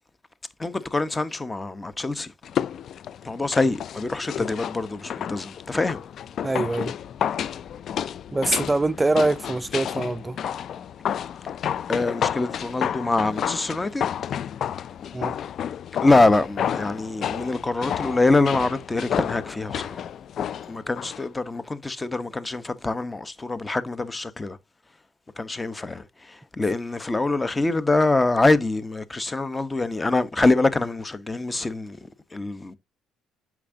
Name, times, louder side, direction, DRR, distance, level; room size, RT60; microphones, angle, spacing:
voice 1, 0.6-2.3 3.2-6.0 11.9-14.0 16.0-20.0 20.7-24.6 25.4-32.8, left 2 dB, 20° left, 1.0 m, -24 dB
sound 1, 2.4-21.2 21.5-21.6, left 9 dB, 60° left, 0.4 m, -31 dB
voice 2, 6.4-6.9 8.3-10.4 15.1-15.4, right 2 dB, 20° right, 0.5 m, -24 dB
8.3 x 6.1 x 2.7 m
supercardioid pair, 75°, 0 cm